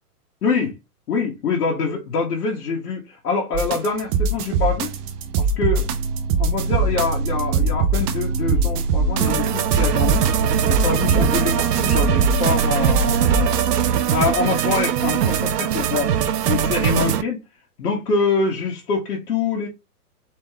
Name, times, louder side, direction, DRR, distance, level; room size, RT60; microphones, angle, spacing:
voice 1, 0.4-0.7 1.1-4.9 5.4-5.9 6.4-10.2 10.7-13.7 14.1-16.1 16.5-17.4 17.8-19.7, left 4 dB, 75° left, 1.6 m, -25 dB
sound 1, 3.5-14.0, right 4 dB, 25° right, 0.5 m, -22 dB
sound 2, 9.2-17.2, right 9 dB, 85° right, 0.7 m, -22 dB
4.1 x 3.3 x 3.6 m
hypercardioid pair, 125°, 46 cm